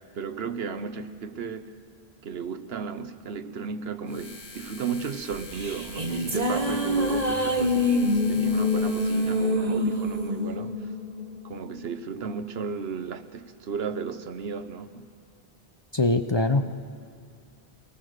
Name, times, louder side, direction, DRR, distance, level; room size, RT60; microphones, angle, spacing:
voice 1, 0.1-1.7 2.2-10.8 11.4-15.1, right 6 dB, 75° right, 10 dB, 1.1 m, -34 dB
sound 1, 4.1-9.6, left 4 dB, 60° left, 1.4 m, -45 dB
sound 2, 5.3-11.9, left 1 dB, 40° right, 1.5 m, -26 dB
voice 2, 15.9-16.7, left 2 dB, 30° left, 8 dB, 0.6 m, -23 dB
22.0 x 19.5 x 6.5 m, 2.3 s
omnidirectional pair, 1.0 m